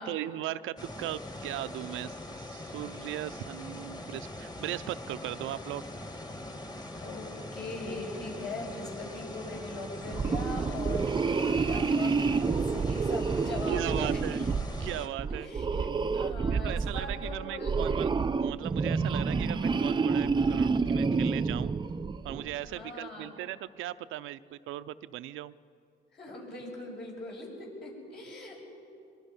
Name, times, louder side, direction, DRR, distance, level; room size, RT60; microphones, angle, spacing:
voice 1, 0.0-5.8 13.7-14.5 14.8-15.5 16.4-18.1 18.4-21.7 22.2-25.5, right 14 dB, 85° right, 13 dB, 0.5 m, -38 dB
sound 1, 0.8-15.1, left 1 dB, 20° left, 1.7 m, -42 dB
voice 2, 7.5-14.2 15.3-15.9 16.1-17.8 22.6-23.4 26.1-28.7, left 2 dB, 60° left, -2 dB, 7.3 m, -41 dB
sound 2, 10.1-22.6, right 4 dB, 25° right, 0.5 m, -29 dB
23.5 x 23.0 x 5.5 m, 2.5 s
cardioid pair, 90°, 20 cm